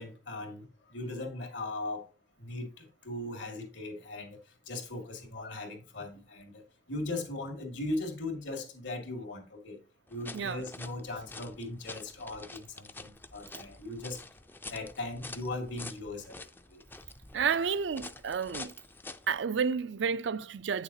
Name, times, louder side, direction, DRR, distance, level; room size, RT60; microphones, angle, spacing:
voice 1, 0.0-2.1 2.4-4.4 4.7-6.6 6.9-9.8 10.1-14.2 14.7-16.4 16.7-16.8, left 2 dB, 75° left, 2.3 m, -38 dB
sound 1, 10.1-19.4, left 3 dB, 10° left, 0.4 m, -47 dB
voice 2, 17.3-18.7 19.3-20.8, right 6 dB, 70° right, 0.4 m, -31 dB
9.0 x 6.6 x 2.8 m
head